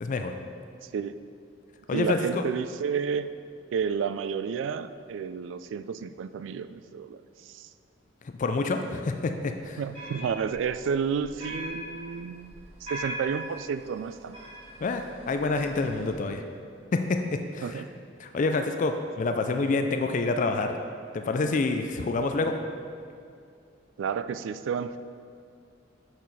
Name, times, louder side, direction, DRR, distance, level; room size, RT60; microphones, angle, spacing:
voice 1, 0.0-0.3 1.9-2.2 8.4-9.8 14.8-16.4 16.9-17.8 18.2-20.8 21.1-22.5, left 3 dB, 45° left, 6 dB, 0.4 m, -27 dB
voice 2, 1.9-3.3 3.7-7.2 7.5-7.7 9.8-14.4 17.6-17.9 24.0-25.0, right 6 dB, 85° right, 13 dB, 0.3 m, -31 dB
sound 1, 9.6-16.1, right 1 dB, 30° right, 1.6 m, -41 dB
6.6 x 6.1 x 4.1 m, 2.4 s
head